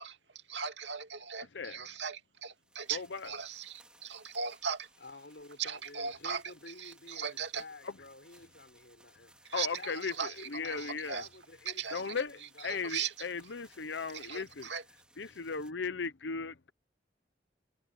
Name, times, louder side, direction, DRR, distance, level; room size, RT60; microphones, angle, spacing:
voice 1, 0.0-4.9 5.6-7.6 9.4-11.3 11.7-12.2 12.6-13.3 14.1-14.8, right 6 dB, 85° right, 2.6 m, -39 dB
sound 1, 2.6-15.7, right 1 dB, 5° right, 4.4 m, -63 dB
voice 2, 2.9-3.3 7.8-7.9 9.5-11.2 11.9-12.4 12.6-14.7 15.2-16.7, left 5 dB, 90° left, 0.9 m, -37 dB
voice 3, 5.0-12.9, left 2 dB, 70° left, 5.0 m, -51 dB
head